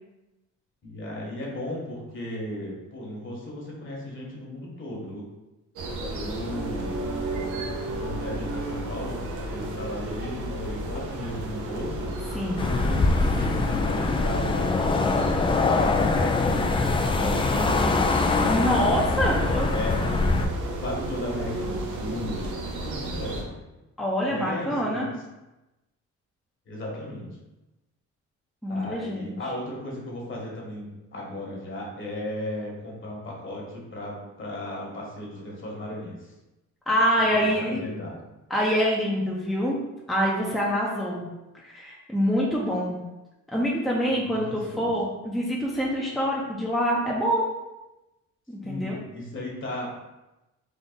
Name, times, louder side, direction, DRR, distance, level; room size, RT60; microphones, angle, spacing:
voice 1, 0.8-5.3 6.1-7.0 8.0-12.1 12.6-20.2 20.8-22.5 22.8-23.5 24.3-25.0 26.7-27.3 28.7-36.3 37.3-38.2 44.1-45.0 48.6-49.9, left 1 dB, 40° left, -2 dB, 1.4 m, -35 dB
sound 1, 5.8-23.4, right 1 dB, 80° right, 0.8 m, -33 dB
voice 2, 12.3-12.7 18.5-19.7 24.0-25.1 28.6-29.4 36.9-37.8 38.5-39.8 40.1-41.2 41.5-43.0 43.5-47.5 48.5-49.0, equal, ahead, -5 dB, 0.7 m, -25 dB
sound 2, 12.6-20.5, left 3 dB, 20° left, 0.3 m, -23 dB
3.7 x 2.5 x 3.9 m, 1.0 s
cardioid pair, 90°, 30 cm